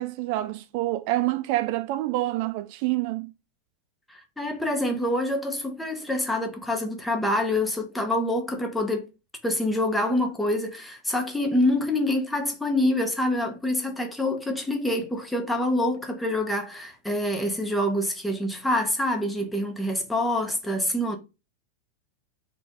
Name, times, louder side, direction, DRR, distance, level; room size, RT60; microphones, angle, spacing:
voice 1, 0.0-3.3, right 16 dB, 55° right, 0.3 m, -27 dB
voice 2, 4.1-9.1 9.4-21.2, left 1 dB, 5° left, 1.0 m, -26 dB
4.4 x 2.5 x 4.6 m
supercardioid pair, 135°, 0 cm